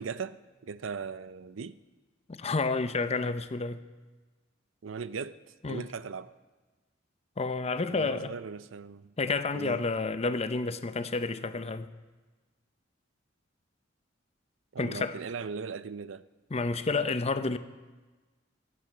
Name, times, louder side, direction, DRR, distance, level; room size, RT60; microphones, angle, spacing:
voice 1, 0.0-1.8 4.8-5.4 5.7-6.3 7.9-9.1 9.5-9.8 14.7-16.3, right 5 dB, 85° right, 0.5 m, -38 dB
voice 2, 2.3-3.8 5.6-5.9 7.4-8.3 9.2-11.9 14.8-15.2 16.5-17.6, left 3 dB, 35° left, 0.6 m, -30 dB
24.0 x 8.8 x 6.6 m
head